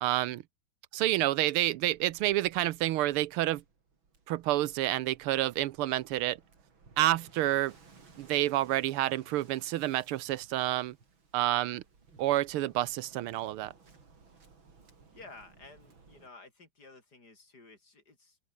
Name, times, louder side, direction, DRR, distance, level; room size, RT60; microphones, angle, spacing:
voice 1, 0.0-0.4 0.9-3.6 4.3-6.4 7.0-7.7 8.2-11.0 11.3-11.8 12.2-13.7, right 15 dB, 85° right, 1.7 m, -29 dB
Waves surf, 1.5-16.3, right 4 dB, 65° right, 4.4 m, -60 dB
voice 2, 15.1-18.4, left 3 dB, 45° left, 4.9 m, -53 dB
open air
omnidirectional pair, 2.3 m